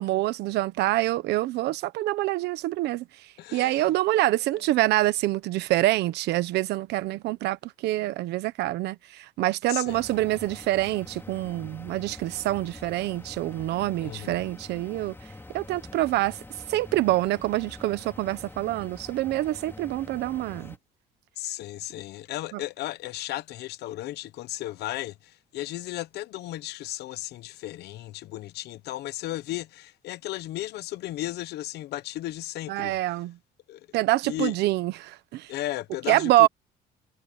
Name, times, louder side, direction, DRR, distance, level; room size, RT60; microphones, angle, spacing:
voice 1, 0.0-15.1 15.5-16.4 16.7-20.7 22.5-22.6 32.7-33.4 33.9-35.5 36.1-36.5, right 16 dB, 80° right, 1.2 m, -26 dB
voice 2, 3.4-3.8 4.5-4.6 9.7-10.0 14.0-14.4 21.4-33.0 33.7-33.9 34.2-34.5 35.5-36.5, left 15 dB, 75° left, 1.0 m, -35 dB
sound 1, 9.9-20.8, left 2 dB, 15° left, 3.7 m, -45 dB
cardioid pair, 110°, 17 cm